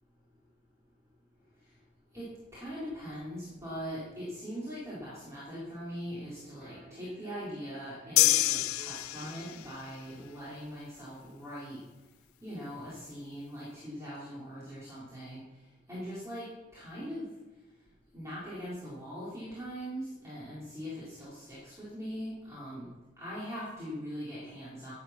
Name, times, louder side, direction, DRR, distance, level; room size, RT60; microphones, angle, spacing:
voice 1, 2.5-11.8 12.4-15.4 15.9-16.5 16.7-17.3 18.1-22.9 23.2-24.9, equal, 15° right, -10 dB, 4.1 m, -41 dB
Human voice / Subway metro underground, 5.7-11.2, right 2 dB, 40° right, 3.5 m, -56 dB
sound 1, 8.2-9.7, left 15 dB, 80° left, 0.5 m, -26 dB
14.0 x 9.4 x 5.9 m, 1.1 s
head